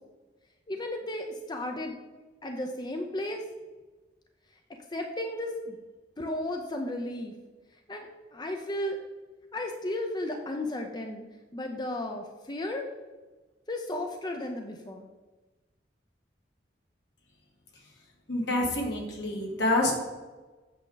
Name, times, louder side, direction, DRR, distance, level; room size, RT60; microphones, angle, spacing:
voice 1, 0.7-2.0 2.4-3.4 4.7-5.8 6.2-7.3 7.9-9.0 9.5-11.2 11.5-12.9 13.7-15.1, left 1 dB, 25° left, 3 dB, 0.6 m, -34 dB
voice 2, 18.3-19.9, left 1 dB, 75° left, -1 dB, 2.1 m, -27 dB
8.3 x 6.5 x 3.9 m, 1.2 s
head